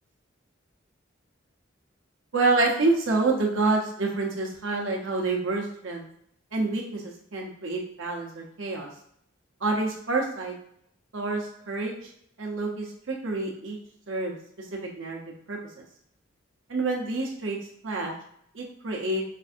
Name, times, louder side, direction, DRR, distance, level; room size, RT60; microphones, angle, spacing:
voice 1, 2.3-6.0 6.5-8.9 9.6-10.5 11.1-12.0 12.4-13.8 14.1-14.4 14.7-15.2 15.5-15.6 16.7-17.6 17.8-18.1 18.5-19.2, right 3 dB, 70° right, -1 dB, 0.9 m, -27 dB
5.3 x 2.6 x 2.5 m, 0.69 s
head